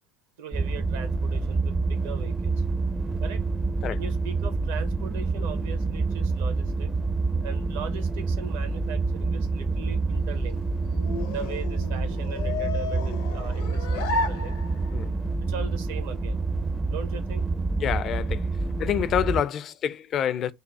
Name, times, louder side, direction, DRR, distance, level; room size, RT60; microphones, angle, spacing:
voice 1, 0.4-2.6 3.2-3.4 3.9-6.9 7.4-10.6 11.3-14.6 15.5-16.4 16.9-17.5, right 6 dB, 70° right, 0.9 m, -39 dB
sound 1, 0.5-19.4, right 3 dB, 20° right, 0.5 m, -27 dB
sound 2, 10.1-15.1, left 3 dB, 70° left, 0.7 m, -33 dB
voice 2, 17.8-18.5 18.8-20.5, left 9 dB, 45° left, 0.4 m, -27 dB
5.4 x 2.0 x 3.9 m
hypercardioid pair, 75°, 0 cm